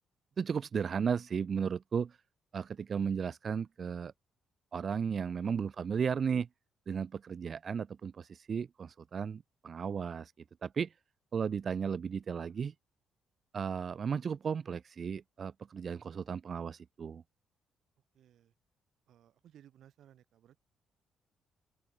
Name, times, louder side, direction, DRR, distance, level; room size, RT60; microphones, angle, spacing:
voice 1, 0.4-2.2 2.5-4.1 4.7-6.5 6.9-10.3 10.6-10.9 11.3-12.7 13.5-17.2, right 6 dB, 45° right, 0.3 m, -35 dB
voice 2, 18.1-18.5 19.1-20.6, right 11 dB, 70° right, 2.1 m, -60 dB
open air
cardioid pair, 90°, 0 cm